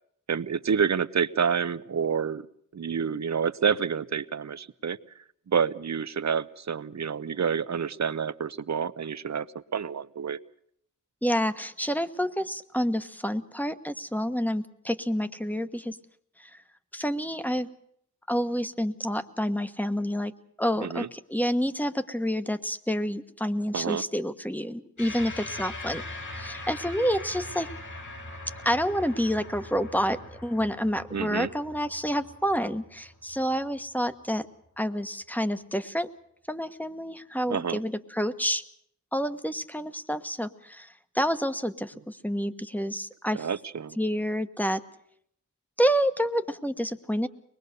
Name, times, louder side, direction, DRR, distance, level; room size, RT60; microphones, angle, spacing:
voice 1, 0.3-2.5 2.7-5.0 5.5-9.5 9.7-10.4 20.8-21.1 23.7-24.0 31.1-31.5 37.5-37.8 43.3-44.0, right 6 dB, 60° right, 15 dB, 0.8 m, -28 dB
voice 2, 11.2-16.0 16.4-16.5 16.9-17.7 18.3-20.3 20.6-26.0 26.3-27.7 28.6-34.5 34.8-36.1 36.5-38.6 39.1-43.5 44.0-44.8 45.8-47.3, equal, 5° left, 10 dB, 1.3 m, -28 dB
sound 1, 25.0-33.7, left 2 dB, 70° left, 5.3 m, -41 dB
24.0 x 20.5 x 6.7 m, 0.69 s
wide cardioid pair, 70°, 32 cm